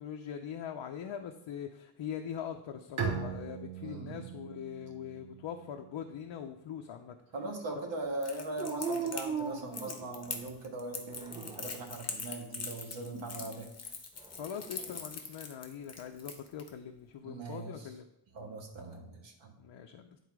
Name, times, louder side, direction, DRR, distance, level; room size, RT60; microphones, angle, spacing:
voice 1, 0.0-7.2 14.4-18.1 19.6-20.2, left 8 dB, 65° left, 4 dB, 0.6 m, -42 dB
Bowed string instrument, 3.0-6.5, right 6 dB, 85° right, 1.5 m, -39 dB
voice 2, 3.8-4.3 7.3-13.7 17.2-17.8 18.3-19.5, right 2 dB, 65° right, 1 dB, 1.6 m, -40 dB
Crackle, 8.2-16.7, left 4 dB, 30° left, 0.9 m, -42 dB
Dog, 8.6-10.5 11.1-11.9 14.2-15.0, right 5 dB, 10° right, 0.4 m, -39 dB
9.8 x 4.1 x 4.7 m, 0.82 s
wide cardioid pair, 175°, 48 cm